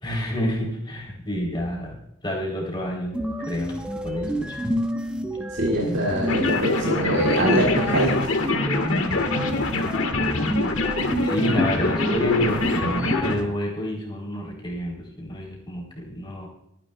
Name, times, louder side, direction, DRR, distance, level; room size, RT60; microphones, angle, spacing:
voice 1, 0.0-3.1 3.5-4.5 11.2-16.5, equal, 25° left, -1 dB, 3.3 m, -29 dB
sound 1, 3.1-13.4, equal, 5° right, 1.0 m, -28 dB
voice 2, 5.5-8.2, right 1 dB, 60° right, -3 dB, 2.2 m, -23 dB
sound 2, 6.3-13.4, left 3 dB, 80° left, 1.5 m, -25 dB
28.0 x 9.9 x 2.3 m, 0.82 s
head